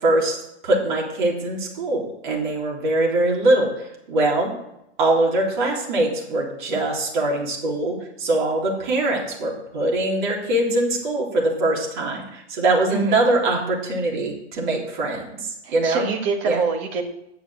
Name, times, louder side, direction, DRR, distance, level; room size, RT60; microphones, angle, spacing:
voice 1, 0.0-0.4 0.6-4.5 5.0-16.1 16.4-16.6, right 2 dB, 45° right, -2 dB, 3.7 m, -22 dB
voice 2, 12.9-13.2 15.6-17.1, right 4 dB, 25° right, 3 dB, 1.7 m, -25 dB
9.7 x 7.2 x 7.5 m, 0.83 s
hypercardioid pair, 165°, 34 cm